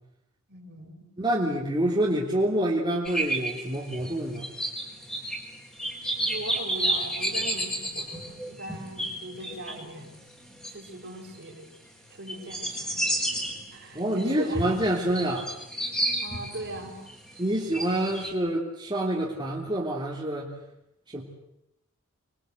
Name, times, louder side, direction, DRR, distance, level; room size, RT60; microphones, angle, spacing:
voice 1, 0.5-1.1 6.2-10.2 10.7-11.7 12.1-13.0 13.7-14.7 16.2-17.0, right 1 dB, 50° right, 2 dB, 5.5 m, -40 dB
voice 2, 1.2-4.5 13.9-15.5 17.4-20.5 21.1-21.2, right 1 dB, 20° right, -3 dB, 3.2 m, -27 dB
sound 1, 3.1-11.4 11.9-12.0 12.3-18.3, right 1 dB, 5° left, 4.3 m, -32 dB
26.0 x 22.5 x 8.0 m, 0.85 s
head